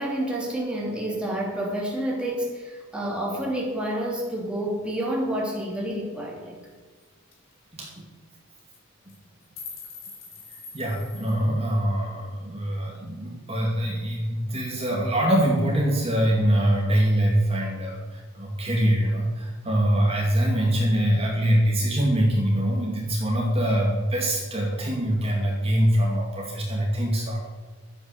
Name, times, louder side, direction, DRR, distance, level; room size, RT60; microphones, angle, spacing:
voice 1, 0.0-6.6, right 1 dB, 5° right, -3 dB, 2.9 m, -29 dB
sound 1, 6.6-6.7 7.0-7.1 7.3-7.5 7.8-7.9 8.6-8.8 9.1-11.4, left 4 dB, 65° left, 3.4 m, -43 dB
voice 2, 10.7-27.4, equal, 30° right, -3 dB, 2.4 m, -23 dB
12.0 x 9.1 x 6.8 m, 1.4 s
head